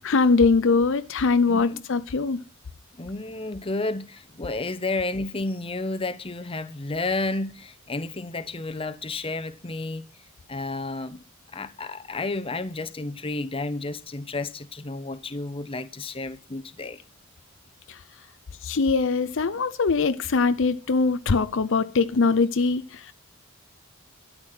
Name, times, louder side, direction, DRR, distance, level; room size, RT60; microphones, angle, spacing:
voice 1, 0.0-2.4 18.6-23.1, left 4 dB, 60° left, 0.6 m, -22 dB
voice 2, 1.5-1.8 3.0-10.0 10.5-11.2 11.5-17.0, left 2 dB, 25° left, 1.0 m, -31 dB
13.0 x 9.6 x 5.9 m
head